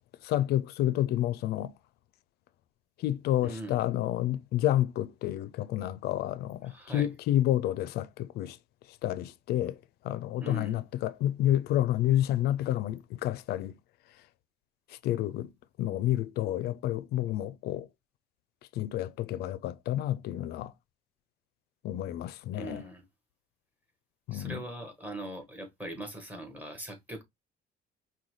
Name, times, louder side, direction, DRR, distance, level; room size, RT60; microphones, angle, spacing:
voice 1, 0.2-1.7 3.0-8.6 9.0-9.7 10.0-13.7 15.0-15.5 15.8-17.9 18.8-20.7 21.8-22.8 24.3-24.6, left 13 dB, 70° left, 0.4 m, -29 dB
voice 2, 3.4-3.8 6.6-7.1 10.4-10.8 22.5-23.0 24.3-27.2, right 1 dB, 10° right, 1.3 m, -41 dB
5.3 x 2.2 x 3.0 m
cardioid pair, 110°, 17 cm